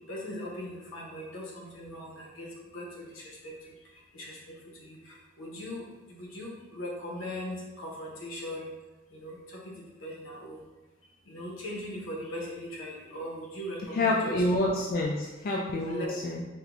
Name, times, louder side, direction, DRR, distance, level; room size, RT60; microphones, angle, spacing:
voice 1, 0.1-3.6 4.1-8.7 9.1-10.6 11.3-14.4 15.9-16.1, left 1 dB, 80° left, -2 dB, 0.8 m, -40 dB
voice 2, 13.8-16.4, left 1 dB, 45° left, -2 dB, 0.3 m, -28 dB
4.8 x 2.2 x 2.5 m, 1.1 s
head